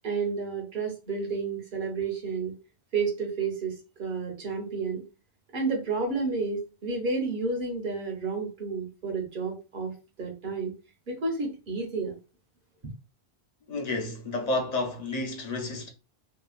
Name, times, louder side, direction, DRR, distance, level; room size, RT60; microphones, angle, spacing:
voice 1, 0.0-2.5 2.9-5.0 5.5-9.9 10.2-10.7 11.1-12.1, right 4 dB, 50° right, 1.0 m, -31 dB
voice 2, 13.7-15.9, left 2 dB, 45° left, 0.6 m, -30 dB
2.9 x 2.2 x 2.4 m
omnidirectional pair, 1.1 m